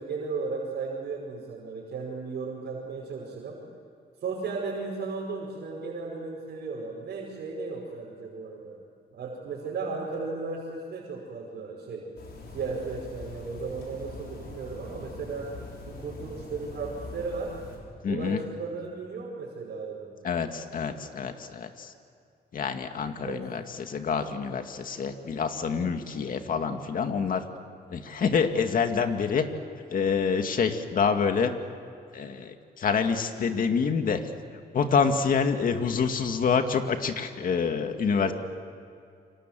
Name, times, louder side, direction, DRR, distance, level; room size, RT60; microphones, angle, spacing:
voice 1, 0.0-3.6 4.2-8.8 9.1-12.1 12.5-15.5 15.9-17.5 18.1-20.2 23.2-23.5 38.2-38.3, right 4 dB, 75° right, -4 dB, 5.7 m, -35 dB
sound 1, 12.2-17.8, left 3 dB, 70° left, 6.8 m, -43 dB
voice 2, 18.0-18.4 20.2-21.9 22.5-27.4 27.9-29.5 29.9-31.5 32.1-34.3 34.7-38.3, left 6 dB, 55° left, 6 dB, 2.2 m, -27 dB
29.5 x 26.0 x 7.7 m, 2.4 s
cardioid pair, 130°, 17 cm